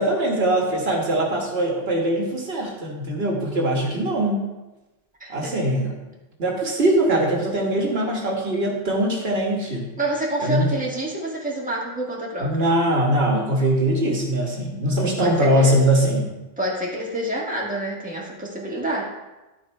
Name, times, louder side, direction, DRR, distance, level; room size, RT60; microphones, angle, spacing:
voice 1, 0.0-4.4 5.3-5.9 6.4-9.9 10.4-10.7 12.4-16.3, right 1 dB, 75° right, -1 dB, 1.7 m, -22 dB
voice 2, 5.2-5.5 10.0-12.7 15.2-15.7 16.6-19.0, right 1 dB, 10° right, -4 dB, 1.7 m, -28 dB
12.0 x 4.2 x 4.5 m, 1.1 s
omnidirectional pair, 1.1 m